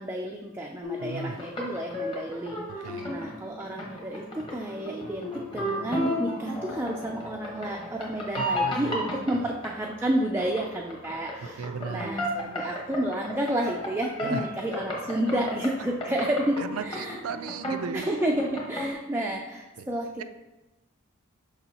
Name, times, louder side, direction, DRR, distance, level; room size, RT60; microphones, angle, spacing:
voice 1, 0.0-17.2 17.9-20.2, right 1 dB, 10° right, -1 dB, 0.4 m, -31 dB
sound 1, 0.8-18.9, equal, 25° left, 1.3 m, -34 dB
voice 2, 1.0-1.4 2.8-3.1 8.4-9.0 11.6-12.1 14.2-14.4 16.6-18.1 19.8-19.9, right 5 dB, 80° right, 11 dB, 0.4 m, -36 dB
6.7 x 5.4 x 2.9 m, 1.1 s
head